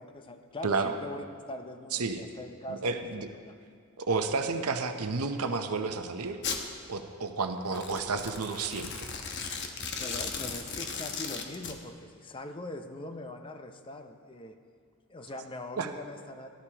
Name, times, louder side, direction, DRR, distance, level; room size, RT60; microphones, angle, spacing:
voice 1, 0.0-3.1 3.3-3.6 10.0-14.6 15.1-16.5, left 1 dB, 25° left, 7 dB, 0.5 m, -42 dB
voice 2, 2.7-3.3 4.0-6.4 6.9-9.1 15.8-15.9, right 4 dB, 80° right, 7 dB, 0.7 m, -31 dB
Domestic sounds home sounds, 6.4-6.6 7.7-11.8, left 5 dB, 50° left, 0.9 m, -36 dB
18.0 x 11.5 x 2.9 m, 2.2 s
head